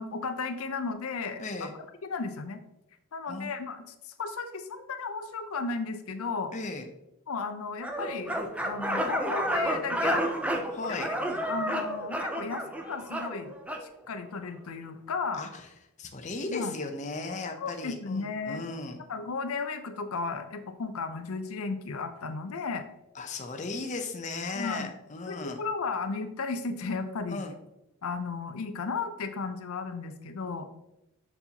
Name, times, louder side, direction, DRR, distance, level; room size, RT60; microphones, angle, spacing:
voice 1, 0.0-1.4 2.0-2.6 3.1-6.5 7.3-8.4 8.6-10.3 10.9-11.2 11.5-15.4 16.5-16.8 17.6-18.6 19.1-22.8 24.5-24.9 25.3-27.4 28.0-30.6, left 4 dB, 75° left, 8 dB, 0.6 m, -34 dB
voice 2, 1.4-1.7 3.3-3.5 6.5-6.8 10.7-11.1 15.3-15.7 16.0-19.0 23.1-25.6 27.3-27.5, left 3 dB, 35° left, 4 dB, 0.6 m, -36 dB
sound 1, 7.8-13.9, equal, 5° right, 0.5 m, -30 dB
7.0 x 5.5 x 2.8 m, 0.88 s
head